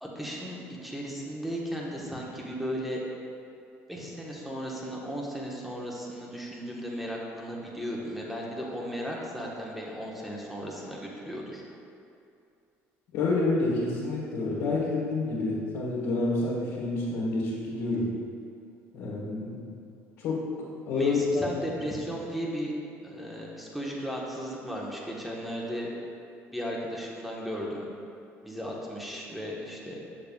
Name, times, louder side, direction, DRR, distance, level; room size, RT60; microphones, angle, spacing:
voice 1, 0.0-3.0 3.9-11.6 20.9-22.7 23.0-25.9 26.5-27.9 28.4-30.0, equal, ahead, -3 dB, 1.2 m, -36 dB
voice 2, 13.1-18.1 18.9-19.8 20.2-20.4 20.9-21.6, left 3 dB, 80° left, -8 dB, 1.5 m, -28 dB
7.0 x 6.7 x 2.3 m, 2.5 s
cardioid pair, 100°, 6 cm